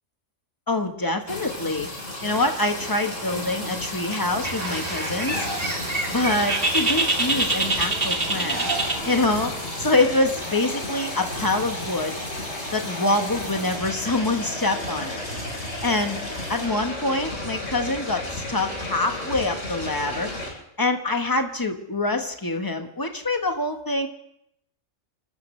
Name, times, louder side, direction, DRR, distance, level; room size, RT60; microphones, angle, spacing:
voice 1, 0.7-1.9 2.2-5.5 6.1-8.7 9.0-9.5 9.8-12.2 12.7-15.2 15.6-16.2 16.5-24.1, left 2 dB, 15° left, 5 dB, 1.2 m, -25 dB
sound 1, 1.3-20.5, left 1 dB, 70° left, 4.8 m, -33 dB
Bird, 4.4-9.5, right 2 dB, 45° right, 2.1 m, -26 dB
30.0 x 13.5 x 3.3 m, 0.77 s
omnidirectional pair, 1.3 m